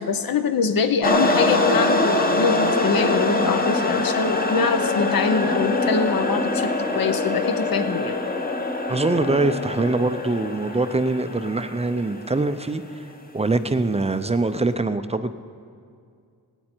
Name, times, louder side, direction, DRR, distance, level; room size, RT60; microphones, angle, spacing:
voice 1, 0.0-8.2, left 5 dB, 65° left, 10 dB, 0.9 m, -24 dB
sound 1, 1.0-12.5, left 2 dB, 25° left, 0.9 m, -24 dB
voice 2, 8.9-13.1 13.3-15.4, right 2 dB, 20° right, 10 dB, 0.4 m, -23 dB
18.0 x 17.0 x 4.4 m, 2.3 s
wide cardioid pair, 155°, 37 cm